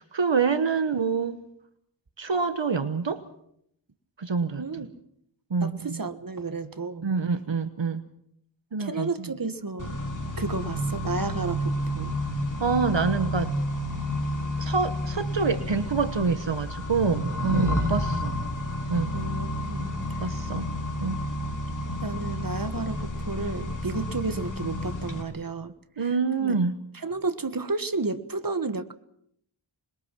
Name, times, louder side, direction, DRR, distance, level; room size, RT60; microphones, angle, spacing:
voice 1, 0.0-1.4 2.2-3.2 4.2-4.9 5.5-6.0 7.0-8.0 8.7-9.3 12.6-13.5 14.6-18.4 18.9-19.1 20.2-20.7 21.0-21.2 26.0-26.7, right 5 dB, 65° right, 11 dB, 1.2 m, -26 dB
voice 2, 4.6-4.9 5.6-7.1 8.8-10.0 10.4-12.1 17.5-17.9 19.1-19.9 22.0-26.1 26.4-26.5 27.0-28.9, right 3 dB, 45° right, 11 dB, 1.5 m, -32 dB
Accelerating revving vroom, 9.8-25.2, left 1 dB, 40° left, 5.2 m, -30 dB
26.5 x 22.0 x 6.1 m, 0.71 s
wide cardioid pair, 60°, 47 cm